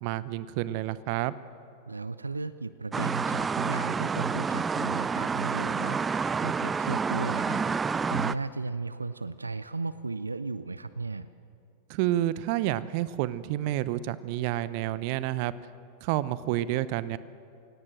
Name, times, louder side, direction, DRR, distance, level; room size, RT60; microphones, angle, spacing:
voice 1, 0.0-1.3 11.9-15.5 16.0-17.2, right 14 dB, 45° right, 17 dB, 0.8 m, -29 dB
voice 2, 1.9-11.3, right 3 dB, 80° right, 15 dB, 0.6 m, -35 dB
sound 1, 2.9-8.3, right 5 dB, 15° right, 0.5 m, -29 dB
28.5 x 17.5 x 7.8 m, 2.5 s
figure-of-eight pair, 90°, 0 cm